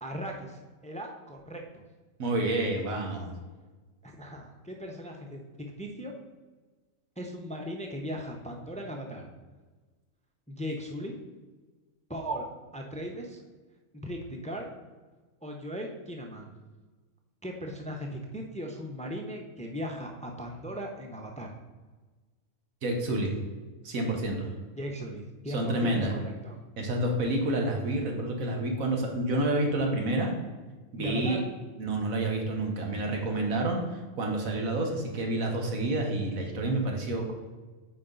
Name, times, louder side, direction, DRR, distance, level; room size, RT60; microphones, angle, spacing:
voice 1, 0.0-1.8 4.0-5.4 5.8-6.1 7.2-9.3 10.5-11.1 12.1-12.5 12.7-13.4 13.9-14.7 15.4-16.5 17.4-21.5 24.8-26.6 31.0-31.5, equal, 10° left, 2 dB, 0.4 m, -37 dB
voice 2, 2.2-3.3 22.8-23.3 23.8-24.5 25.5-26.1 26.8-30.3 30.9-31.4 31.8-33.8 34.2-37.3, right 2 dB, 90° right, 2 dB, 1.6 m, -29 dB
8.3 x 4.6 x 3.9 m, 1.3 s
omnidirectional pair, 1.4 m